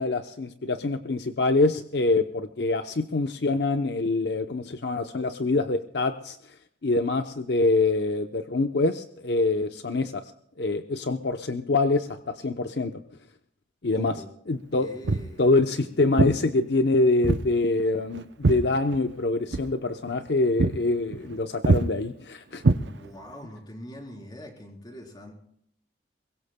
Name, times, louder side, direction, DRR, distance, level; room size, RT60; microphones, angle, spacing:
voice 1, 0.0-6.4 6.8-10.2 10.6-12.9 13.8-14.9 15.4-22.6, left 2 dB, 65° left, 8 dB, 0.7 m, -25 dB
voice 2, 13.9-14.3 14.8-15.4 22.8-25.3, equal, 25° left, 1 dB, 3.7 m, -43 dB
Walk footsteps, 15.0-15.3 16.2-16.4 17.2-17.5 17.8-19.2 19.5-19.7 20.1-20.3 20.6-20.8 21.1-21.4 21.6-21.9 22.6-23.3, right 3 dB, 75° right, 0.6 m, -23 dB
23.0 x 21.0 x 2.2 m, 0.68 s
head